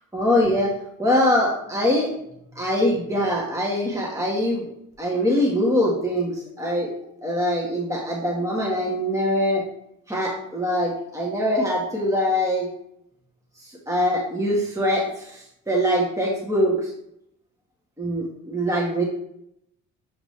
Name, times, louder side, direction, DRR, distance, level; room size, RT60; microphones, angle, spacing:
voice 1, 0.1-0.7 1.0-2.1 2.5-4.7 5.0-6.9 7.2-9.6 10.1-12.7 13.6-16.9 18.0-19.0, equal, 10° right, -3 dB, 1.6 m, -23 dB
6.6 x 4.9 x 3.3 m, 0.76 s
cardioid pair, 90°, 30 cm